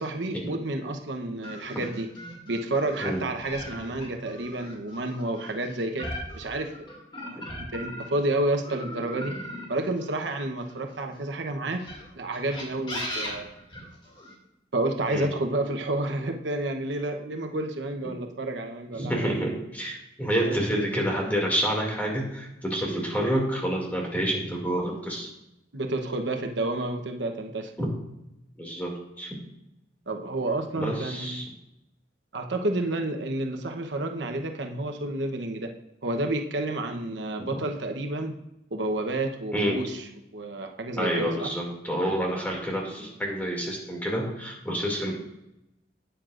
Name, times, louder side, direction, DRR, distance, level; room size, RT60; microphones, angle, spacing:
voice 1, 0.0-2.1 2.5-6.7 7.2-9.3 9.7-11.8 12.2-13.5 14.7-19.3 20.4-20.6 25.7-27.7 30.1-31.4 32.3-35.7 36.0-38.3 38.7-39.8 40.3-41.5, right 2 dB, 80° right, 4 dB, 1.0 m, -30 dB
sound 1, 1.4-8.2 8.6-11.0 11.7-14.3, equal, 25° left, 2.3 m, -38 dB
voice 2, 18.9-25.3 27.8-27.9 28.6-29.4 30.7-31.5 39.5-39.8 41.0-45.1, equal, 10° left, -2 dB, 2.4 m, -28 dB
12.5 x 9.1 x 2.5 m, 0.87 s
head